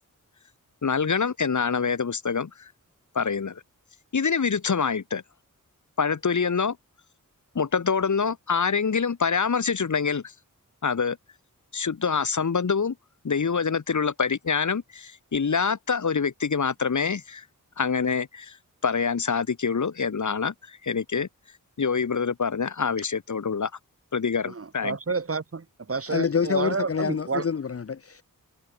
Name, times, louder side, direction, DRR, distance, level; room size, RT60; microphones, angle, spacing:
voice 1, 0.8-2.7 3.2-3.6 4.1-5.2 6.0-6.8 7.6-10.2 10.8-11.2 11.7-12.9 13.2-17.4 17.8-18.6 18.8-21.3 21.8-23.7 24.1-25.0, left 5 dB, 60° left, 1.9 m, -25 dB
voice 2, 24.5-27.4, right 4 dB, 45° right, 1.8 m, -30 dB
voice 3, 26.1-28.2, left 6 dB, 45° left, 0.8 m, -27 dB
wide cardioid pair, 110°, 33 cm